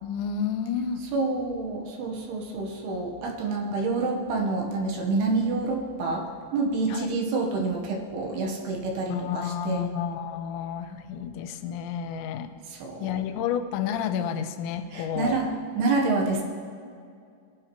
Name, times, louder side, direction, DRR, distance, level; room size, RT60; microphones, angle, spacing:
voice 1, 0.0-1.0 6.9-7.1 9.1-12.5 13.0-15.4, left 8 dB, 85° left, 8 dB, 2.9 m, -30 dB
voice 2, 1.1-6.3 6.5-9.9 12.7-13.2 14.9-16.4, right 3 dB, 70° right, 0 dB, 2.9 m, -28 dB
20.0 x 11.0 x 3.0 m, 2.3 s
omnidirectional pair, 5.2 m